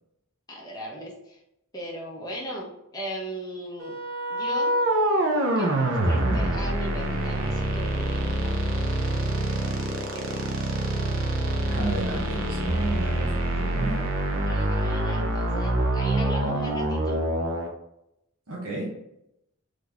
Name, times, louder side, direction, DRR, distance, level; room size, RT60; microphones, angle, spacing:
voice 1, 0.5-1.4 1.7-4.0 4.3-4.7 5.6-10.7 14.5-17.2, equal, 20° left, -3 dB, 0.9 m, -38 dB
sound 1, 3.8-17.7, right 1 dB, 65° right, 0.7 m, -26 dB
voice 2, 6.1-6.4 11.7-14.0 18.5-18.9, right 1 dB, 90° right, -5 dB, 1.0 m, -32 dB
4.0 x 3.3 x 3.4 m, 0.82 s
head